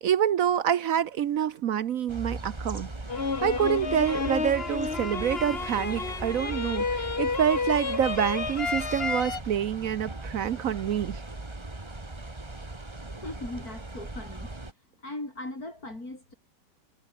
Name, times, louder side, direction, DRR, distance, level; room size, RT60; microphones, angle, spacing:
voice 1, 0.0-2.9 3.4-11.2, right 9 dB, 60° right, 1.0 m, -27 dB
sound 1, 2.1-14.7, right 2 dB, 15° right, 1.8 m, -39 dB
sound 2, 3.1-9.4, left 4 dB, 35° left, 1.9 m, -31 dB
voice 2, 13.1-14.5 15.0-16.3, left 2 dB, 60° left, 7.5 m, -39 dB
omnidirectional pair, 1.8 m